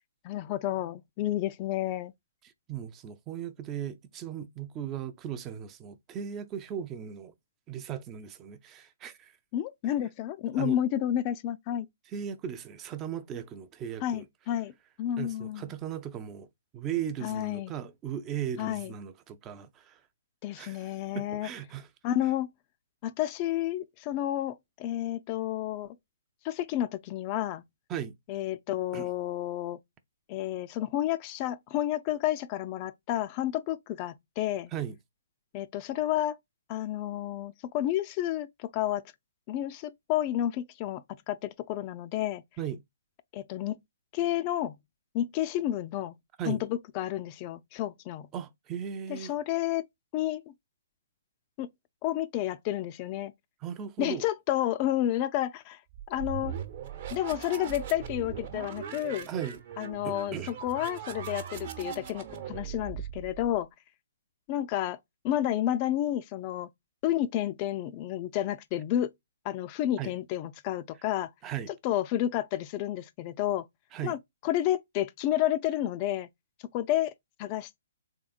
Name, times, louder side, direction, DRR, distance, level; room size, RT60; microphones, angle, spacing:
voice 1, 0.2-2.1 9.5-11.9 14.0-14.7 15.0-15.8 17.2-17.7 18.6-18.9 20.4-21.5 22.0-22.5 23.0-26.0 26.4-27.6 28.3-29.8 30.3-34.7 35.5-36.4 36.7-39.0 39.5-42.4 43.3-43.8 44.1-44.8 45.1-46.1 46.5-48.3 49.1-49.8 50.1-50.4 51.6-51.7 52.0-53.3 54.0-55.8 56.1-56.5 57.1-59.3 59.8-63.7 64.5-65.0 65.2-66.7 67.0-69.1 69.4-71.3 71.7-73.7 74.0-76.3 76.7-77.1 77.4-77.8, left 12 dB, 30° left, 0.4 m, -30 dB
voice 2, 2.7-7.3 7.7-9.3 10.6-10.8 12.1-14.2 15.2-16.5 16.7-20.0 20.5-21.9 27.9-28.1 28.9-29.1 34.7-35.0 42.6-42.8 46.4-46.6 48.3-49.3 53.6-54.2 59.3-59.6 60.0-60.5 70.0-70.1 71.4-71.7 73.9-74.2, right 9 dB, 20° right, 0.5 m, -37 dB
sound 1, 55.9-63.6, right 9 dB, 45° right, 0.9 m, -40 dB
3.7 x 3.4 x 2.3 m
hypercardioid pair, 135°, 0 cm